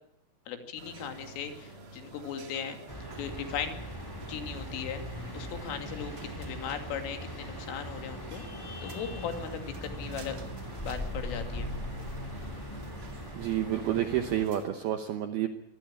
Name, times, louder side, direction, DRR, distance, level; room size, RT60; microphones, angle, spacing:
voice 1, 0.5-2.8 3.2-3.8 4.3-8.4 8.8-10.4 10.8-11.7, left 7 dB, 75° left, 7 dB, 4.8 m, -38 dB
sound 1, 0.8-14.7, right 2 dB, 40° right, 2.1 m, -49 dB
sound 2, 2.9-14.4, equal, 5° left, 3.4 m, -40 dB
voice 2, 13.4-15.5, right 11 dB, 75° right, 8 dB, 2.3 m, -29 dB
24.5 x 19.0 x 8.8 m, 0.75 s
omnidirectional pair, 5.9 m